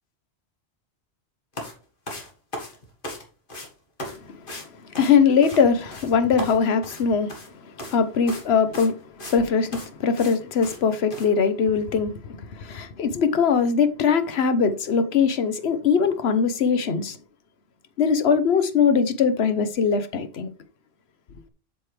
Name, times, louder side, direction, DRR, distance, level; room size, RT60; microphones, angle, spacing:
sound 1, 1.5-1.7 2.1-3.2 3.5-3.7 4.0-4.2 4.5-4.7 4.9-5.6 5.9-6.1 6.4-7.5 7.8-8.0 8.3-8.5 8.7-9.4 9.7-9.9 10.2-10.4 10.6-10.8 11.1-11.3, left 1 dB, 50° left, 1.9 m, -36 dB
voice 1, 5.0-7.3 7.9-8.9 9.3-17.2 18.0-20.5, left 6 dB, 70° left, 1.1 m, -21 dB
7.8 x 6.8 x 3.3 m
omnidirectional pair, 1.1 m